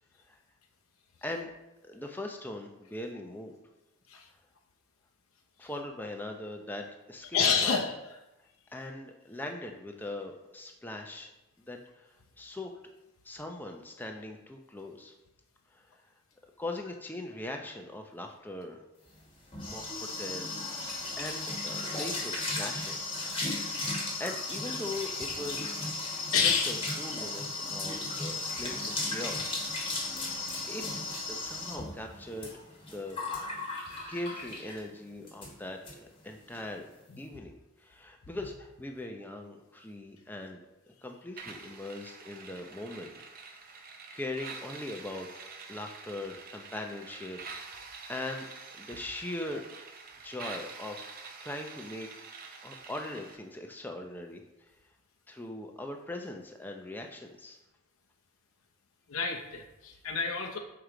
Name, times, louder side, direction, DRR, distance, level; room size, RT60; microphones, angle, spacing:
voice 1, 1.2-1.5 1.8-3.6 5.6-7.8 8.7-11.3 11.7-12.1 12.4-12.7 13.2-15.1 15.7-16.0 16.6-18.8 19.6-19.8 20.2-23.1 23.7-25.7 26.2-29.6 30.1-30.4 30.7-31.0 31.3-32.5 32.9-33.2 34.1-36.9 37.2-40.6 41.0-43.1 43.7-43.8 44.1-45.3 45.7-47.4 47.8-48.5 48.7-49.7 50.2-52.1 52.6-54.4 55.3-57.6, left 1 dB, 10° left, 3 dB, 0.5 m, -40 dB
voice 2, 7.3-7.9 21.0-21.2 26.3-26.8 37.1-37.2 59.1-60.6, left 6 dB, 80° left, 1 dB, 0.7 m, -28 dB
sound 1, 19.1-34.9 35.3-35.5 35.8-35.9 36.2-36.6, left 2 dB, 25° left, 1.3 m, -35 dB
sound 2, 41.4-53.4, right 4 dB, 40° right, 0.7 m, -46 dB
6.6 x 4.7 x 3.8 m, 0.96 s
head